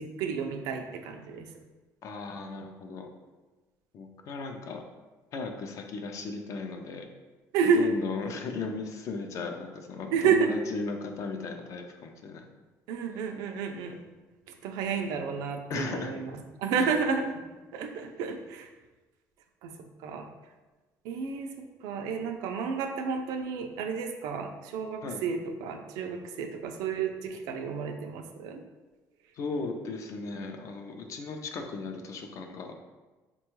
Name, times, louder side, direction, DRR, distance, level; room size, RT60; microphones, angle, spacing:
voice 1, 0.0-1.5 7.5-7.9 10.1-10.5 12.9-14.0 14.6-16.3 16.6-17.4 17.7-18.7 19.6-19.7 20.0-20.2 21.0-21.5 21.8-28.6, right 5 dB, 85° right, 5 dB, 0.3 m, -30 dB
voice 2, 2.0-3.1 3.9-4.8 5.3-7.1 7.6-12.4 13.1-13.3 15.7-16.2 16.7-17.0 25.0-25.3 29.3-32.7, left 4 dB, 55° left, 4 dB, 0.4 m, -36 dB
3.6 x 2.2 x 3.0 m, 1.2 s
cardioid pair, 115°, 6 cm